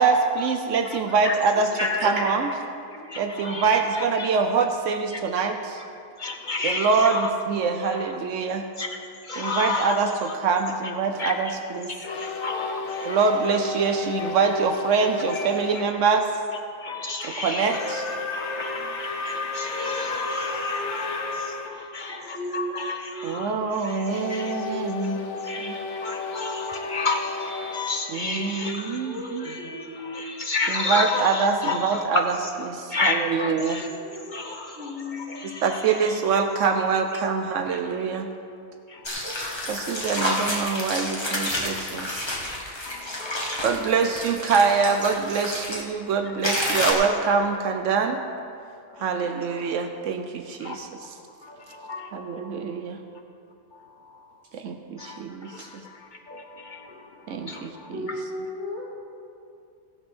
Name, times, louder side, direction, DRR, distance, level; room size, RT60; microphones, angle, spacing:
voice 1, 0.0-1.7 2.0-2.5 3.2-5.8 6.6-8.6 9.4-11.9 13.0-16.3 17.2-18.0 23.2-25.2 25.6-25.8 28.1-29.5 30.7-32.4 32.7-33.8 34.5-34.6 35.6-38.3 39.7-42.3 43.6-48.2 49.0-50.9 52.1-53.0 54.5-55.5 57.3-58.1, right 5 dB, 85° right, 5 dB, 1.1 m, -24 dB
voice 2, 1.5-2.3 2.9-3.1 19.7-21.4 21.7-23.6 24.6-25.3 28.3-28.8 29.0-30.2 33.9-35.7 55.6-55.7 57.9-58.8, left 1 dB, 65° right, -4 dB, 2.6 m, -35 dB
voice 3, 3.1-3.7 4.2-4.3 5.1-5.2 6.2-7.3 8.8-8.9 9.3-10.0 11.2-11.3 11.9-13.2 14.2-14.3 15.3-15.5 16.8-17.8 18.3-24.5 25.5-29.0 29.4-32.2 32.9-33.9 34.3-35.7 37.7-37.8 38.9-39.0 39.3-39.4 41.0-41.1 42.9-43.6 46.5-46.6 47.0-47.1 50.6-50.8 51.4-52.3 55.0-55.7 56.3-57.0 57.5-57.9, left 3 dB, 45° left, 3 dB, 0.8 m, -31 dB
sound 1, 12.0-15.9 17.6-21.7 24.0-28.9, left 3 dB, 70° left, 1.2 m, -33 dB
sound 2, 39.0-45.8 46.4-46.9, left 1 dB, 20° left, 1.5 m, -29 dB
16.5 x 5.6 x 6.1 m, 2.6 s
omnidirectional pair, 1.2 m